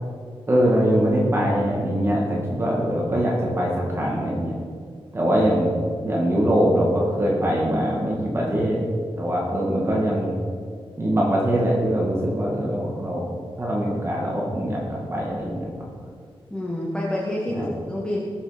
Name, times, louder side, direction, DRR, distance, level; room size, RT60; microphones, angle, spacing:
voice 1, 0.5-4.5 5.1-5.7 6.0-8.9 9.2-10.4 11.0-13.3 13.6-15.7 17.6-17.7, equal, 25° right, -3 dB, 2.1 m, -22 dB
voice 2, 16.5-18.2, left 1 dB, 10° left, -4 dB, 1.6 m, -27 dB
21.0 x 7.2 x 5.2 m, 2.1 s
wide cardioid pair, 165°, 10 cm